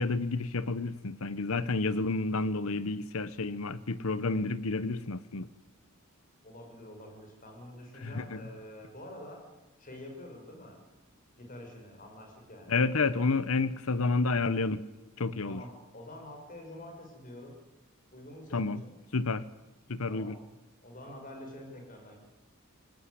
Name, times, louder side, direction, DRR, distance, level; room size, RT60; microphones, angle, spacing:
voice 1, 0.0-5.5 8.0-8.4 12.7-14.8 15.2-15.6 18.5-18.8 19.1-19.4 19.9-20.4, left 3 dB, 70° left, 16 dB, 0.9 m, -30 dB
voice 2, 6.4-9.4 9.8-10.8 11.4-12.8 15.4-17.5 18.1-19.0 20.1-20.3 20.8-22.2, left 1 dB, 40° left, 2 dB, 6.5 m, -47 dB
25.5 x 19.0 x 9.8 m, 1.0 s
head